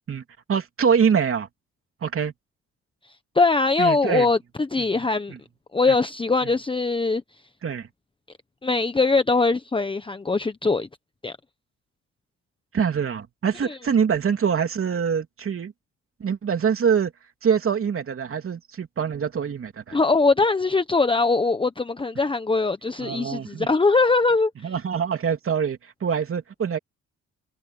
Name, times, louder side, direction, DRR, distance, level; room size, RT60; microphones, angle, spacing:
voice 1, 0.5-1.5 2.0-2.3 3.8-4.3 4.8-5.4 5.9-6.0 6.4-6.5 7.6-7.9 12.7-15.7 16.2-17.1 17.4-20.0 23.0-23.7 24.6-26.8, right 7 dB, 45° right, 3.1 m, -24 dB
voice 2, 3.3-5.3 5.7-7.2 8.6-10.9 11.2-11.4 13.6-13.8 19.9-24.5, left 3 dB, 15° left, 1.1 m, -21 dB
cardioid pair, 90°, 30 cm